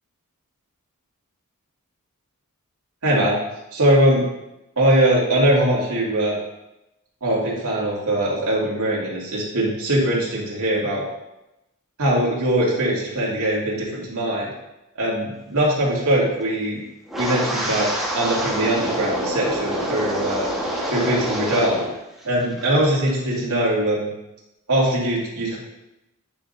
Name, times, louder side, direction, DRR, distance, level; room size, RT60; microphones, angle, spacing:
voice 1, 3.0-3.4 3.7-4.2 4.8-6.4 7.2-11.0 12.0-14.5 15.0-16.8 17.2-20.5 20.9-21.8 22.2-24.1 24.7-25.6, right 1 dB, 90° right, -5 dB, 2.4 m, -21 dB
Wind, 17.1-21.9 22.2-22.7 23.1-23.4, equal, ahead, 1.4 m, -26 dB
9.1 x 6.0 x 2.7 m, 0.91 s
head